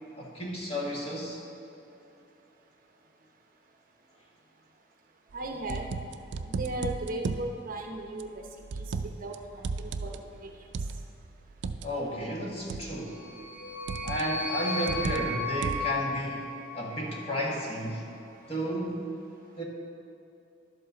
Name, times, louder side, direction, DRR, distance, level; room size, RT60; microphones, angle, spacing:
voice 1, 0.2-1.4 11.8-13.2 14.0-16.4 16.7-18.0 18.5-19.1 19.6-19.7, equal, 30° left, -3 dB, 1.6 m, -32 dB
voice 2, 5.3-5.8 6.5-8.4 8.7-8.9 9.2-10.5, right 1 dB, 45° right, 2 dB, 0.7 m, -36 dB
sound 1, 5.3-7.5 8.2-9.3 9.6-11.9 12.7-13.1 13.9-14.4 14.9-16.0, right 4 dB, 70° right, 0.4 m, -34 dB
sound 2, 13.0-17.4, left 2 dB, 55° left, 0.8 m, -35 dB
11.5 x 7.7 x 3.9 m, 2.8 s
head